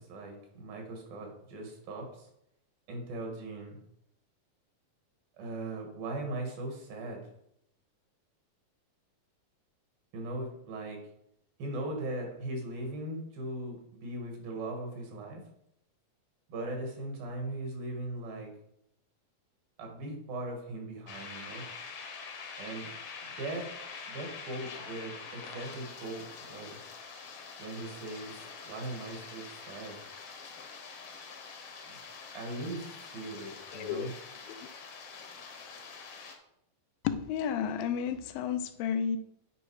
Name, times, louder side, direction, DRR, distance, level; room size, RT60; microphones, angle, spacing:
voice 1, 0.0-2.3 2.9-3.8 5.4-7.2 10.1-11.0 11.6-15.4 16.5-18.5 19.8-21.7 22.6-22.9 23.2-23.7 24.1-26.8 27.6-30.0 31.9-32.0 32.4-34.1, right 2 dB, 80° right, 2 dB, 3.7 m, -39 dB
sound 1, 21.1-36.4, left 5 dB, 65° left, 1.5 m, -45 dB
voice 2, 33.7-34.1 34.5-34.6 37.0-39.2, left 8 dB, 90° left, 9 dB, 2.5 m, -32 dB
9.7 x 5.0 x 4.8 m, 0.76 s
omnidirectional pair, 4.0 m